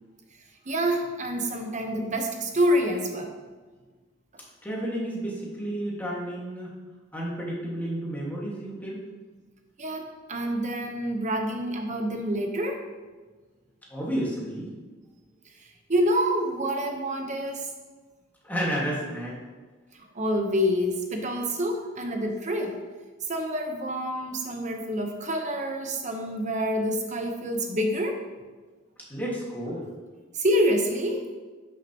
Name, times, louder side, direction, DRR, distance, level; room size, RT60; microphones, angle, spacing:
voice 1, 0.6-3.4 9.8-12.8 15.9-17.7 20.1-22.7 23.3-28.2 30.3-31.3, equal, 35° right, 3 dB, 1.0 m, -27 dB
voice 2, 4.6-6.7 7.1-9.0 13.9-14.7 18.4-19.4 29.1-29.9, equal, 10° left, -5 dB, 1.8 m, -31 dB
10.5 x 6.5 x 3.0 m, 1.3 s
head